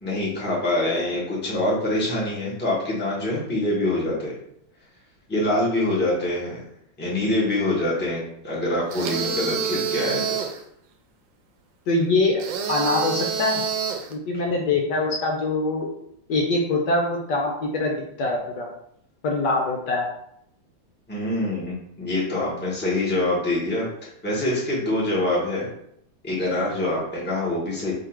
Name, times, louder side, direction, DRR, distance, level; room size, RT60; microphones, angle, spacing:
voice 1, 0.0-4.3 5.3-6.6 7.0-10.4 21.1-23.9 24.2-25.7 26.2-27.9, left 1 dB, 5° left, -6 dB, 1.0 m, -25 dB
sound 1, 8.9-10.6 12.4-14.1, right 7 dB, 75° right, 1.3 m, -27 dB
voice 2, 11.9-12.4 12.7-13.6 14.1-15.9 16.3-18.7 19.2-20.1, left 2 dB, 70° left, 0 dB, 1.2 m, -23 dB
3.9 x 2.8 x 4.4 m, 0.72 s
omnidirectional pair, 2.1 m